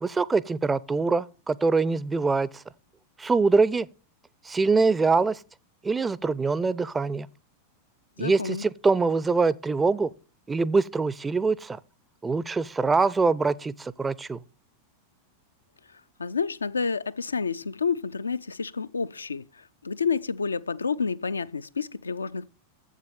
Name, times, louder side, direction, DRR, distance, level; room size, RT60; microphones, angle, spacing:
voice 1, 0.0-2.6 3.2-3.9 4.5-5.4 5.8-7.3 8.2-10.1 10.5-11.8 12.2-14.4, right 4 dB, 15° right, 0.4 m, -24 dB
voice 2, 8.2-8.6 16.2-22.5, left 5 dB, 75° left, 0.4 m, -29 dB
7.6 x 7.4 x 6.9 m
figure-of-eight pair, 90°, 0 cm